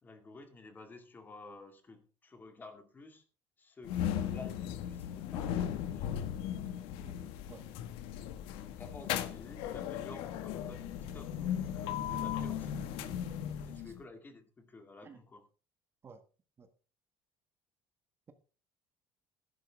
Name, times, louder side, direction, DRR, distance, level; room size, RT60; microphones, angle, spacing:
voice 1, 0.0-3.2 3.6-6.1 6.6-6.7 8.6-13.2 13.6-15.5, left 3 dB, 20° left, 7 dB, 2.1 m, -52 dB
sound 1, 3.8-14.0, left 9 dB, 85° left, 1.5 m, -37 dB
voice 2, 7.0-7.2 7.5-7.7 13.7-13.9 15.0-15.2 16.0-16.2 16.6-16.7, right 5 dB, 25° right, 8 dB, 1.4 m, -54 dB
14.0 x 11.5 x 3.5 m, 0.35 s
cardioid pair, 145°, 9 cm